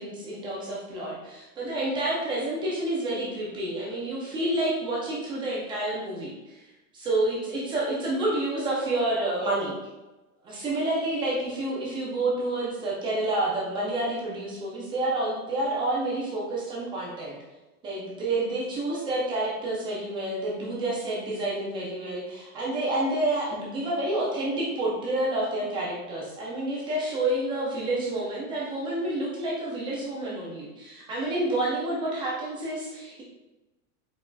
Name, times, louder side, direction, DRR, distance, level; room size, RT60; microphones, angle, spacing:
voice 1, 0.0-6.6 6.9-9.8 10.4-17.4 17.8-33.2, right 2 dB, 15° right, -5 dB, 0.3 m, -29 dB
4.9 x 4.0 x 2.2 m, 1.1 s
supercardioid pair, 145°, 43 cm